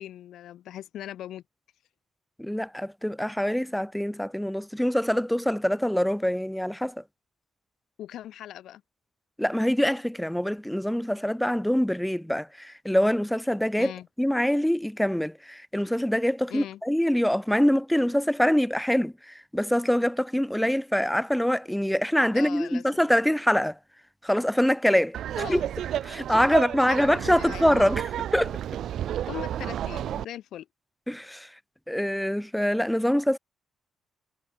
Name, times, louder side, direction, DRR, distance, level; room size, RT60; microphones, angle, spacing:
voice 1, 0.0-1.4 8.0-8.8 13.8-14.1 16.5-16.8 22.3-22.9 25.4-25.6 26.4-27.9 29.3-30.7, left 12 dB, 75° left, 4.8 m, -40 dB
voice 2, 2.4-7.0 9.4-13.9 14.2-23.8 24.2-25.2 25.5-25.6 26.0-28.0 28.3-28.6 31.1-31.5 31.9-33.4, equal, 5° left, 0.9 m, -24 dB
Laughter, 25.1-30.2, right 11 dB, 70° right, 1.2 m, -31 dB
cardioid pair, 90°, 0 cm